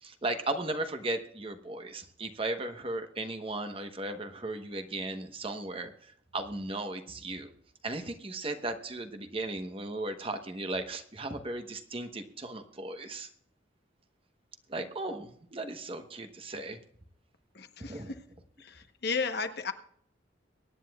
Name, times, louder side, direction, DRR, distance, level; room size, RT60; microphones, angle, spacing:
voice 1, 0.0-7.5 7.8-13.3 14.7-16.8 17.8-18.1, right 2 dB, 30° right, 7 dB, 1.1 m, -36 dB
voice 2, 17.5-18.2 18.6-19.7, left 4 dB, 55° left, 7 dB, 1.1 m, -34 dB
23.5 x 10.0 x 2.4 m, 0.65 s
head